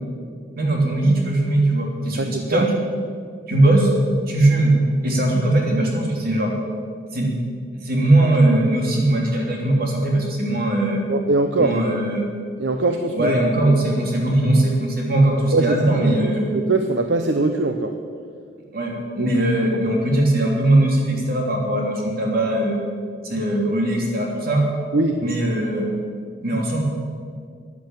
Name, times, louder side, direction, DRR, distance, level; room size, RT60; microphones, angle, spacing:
voice 1, 0.6-2.7 3.5-3.9 4.3-4.7 5.0-6.5 7.1-7.3 7.8-11.0 11.6-12.3 13.1-16.4 18.7-22.8 23.2-24.6 25.2-25.9 26.4-26.8, right 1 dB, 50° right, 0 dB, 3.0 m, -20 dB
voice 2, 2.2-2.7 11.1-11.8 12.6-13.7 15.5-17.9 19.2-19.3 24.9-25.2, right 3 dB, 70° right, 6 dB, 0.8 m, -22 dB
14.5 x 9.8 x 7.4 m, 2.2 s
head